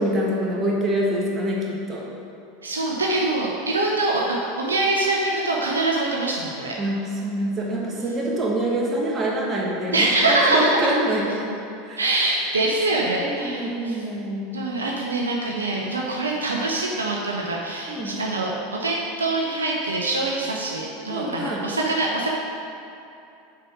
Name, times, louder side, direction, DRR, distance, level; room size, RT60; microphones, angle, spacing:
voice 1, 0.0-2.0 6.8-11.5 11.8-12.0 13.2-14.5 17.9-18.2 21.1-21.6, right 1 dB, 25° right, -3 dB, 1.5 m, -25 dB
voice 2, 2.6-6.8 9.9-10.8 11.2-11.3 12.0-14.0 14.5-22.3, right 2 dB, 80° right, -2 dB, 0.7 m, -24 dB
6.8 x 4.8 x 4.9 m, 2.7 s
figure-of-eight pair, 80°, 0 cm